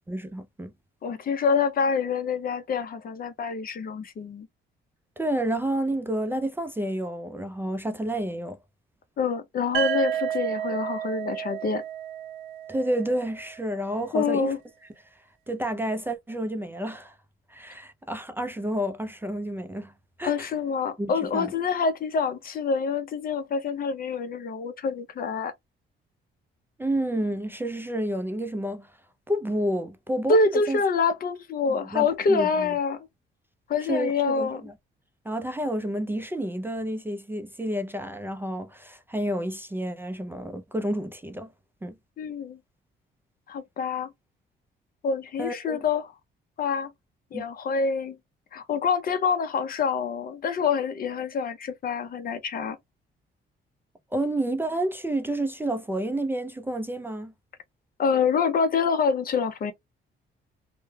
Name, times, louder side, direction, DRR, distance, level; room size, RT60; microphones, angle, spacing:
voice 1, 0.1-0.7 5.2-8.6 12.7-14.5 15.5-17.1 17.5-19.9 20.2-20.5 21.0-21.5 26.8-28.9 29.3-30.8 31.7-32.7 33.9-34.7 35.3-41.5 41.8-41.9 45.4-45.8 47.3-47.4 54.1-57.3, right 1 dB, 10° right, 0.4 m, -30 dB
voice 2, 1.0-4.5 9.2-11.8 14.1-14.6 20.2-25.5 30.3-33.1 33.7-34.6 42.2-42.6 43.5-44.1 45.0-46.1 46.6-46.9 47.3-48.2 48.5-52.8 58.0-59.7, left 5 dB, 50° left, 0.5 m, -26 dB
sound 1, 9.7-13.6, right 10 dB, 80° right, 0.5 m, -31 dB
2.2 x 2.1 x 3.1 m
cardioid pair, 90°, 20 cm